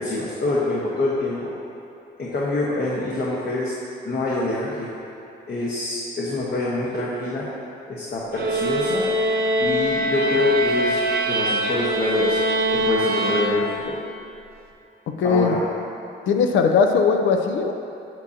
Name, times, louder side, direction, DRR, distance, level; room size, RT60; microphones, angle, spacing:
voice 1, 0.0-1.5 2.2-3.7 4.0-4.9 5.5-7.4 7.9-9.0 9.6-11.0 11.3-12.4 12.7-13.9 15.2-15.6, left 2 dB, 50° left, -6 dB, 1.2 m, -25 dB
sound 1, 8.3-14.0, right 1 dB, 55° right, 0.7 m, -23 dB
voice 2, 15.1-15.6 16.3-17.7, left 5 dB, 75° left, 5 dB, 0.6 m, -19 dB
7.8 x 7.1 x 2.7 m, 2.8 s
cardioid pair, 90°, 20 cm